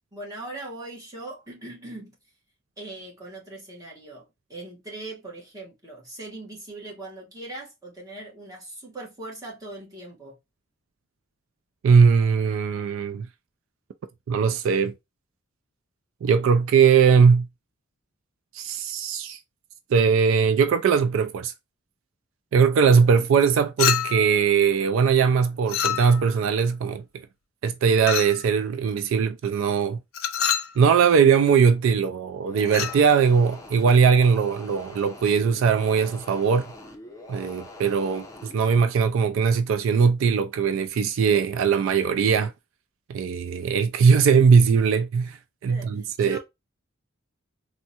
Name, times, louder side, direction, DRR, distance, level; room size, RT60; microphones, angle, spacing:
voice 1, 0.1-2.2 2.8-10.4 45.7-46.4, right 2 dB, 15° right, 1.1 m, -40 dB
voice 2, 11.8-13.3 14.3-14.9 16.2-17.5 18.5-19.4 19.9-21.5 22.5-27.0 27.6-30.0 30.8-36.7 37.3-42.5 43.1-45.4 45.6-46.4, right 6 dB, 75° right, 0.3 m, -20 dB
Chink clink, 23.8-24.4 25.7-26.4 28.1-28.4 30.1-30.8 32.7-33.0, left 9 dB, 90° left, 0.4 m, -26 dB
sound 1, 32.5-38.6, left 2 dB, 15° left, 0.5 m, -44 dB
3.5 x 2.1 x 2.7 m
head